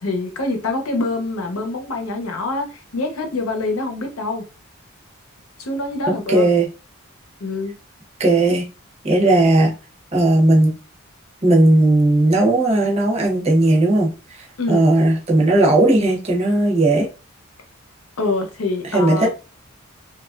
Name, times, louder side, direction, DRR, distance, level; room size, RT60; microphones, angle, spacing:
voice 1, 0.0-4.4 5.6-6.5 7.4-7.7 14.6-14.8 18.2-19.3, left 2 dB, 85° left, 0.7 m, -25 dB
voice 2, 6.3-6.7 8.2-8.7 9.0-9.7 10.1-10.7 11.4-17.1 18.8-19.3, right 2 dB, 30° right, 0.7 m, -16 dB
3.1 x 2.3 x 2.4 m
head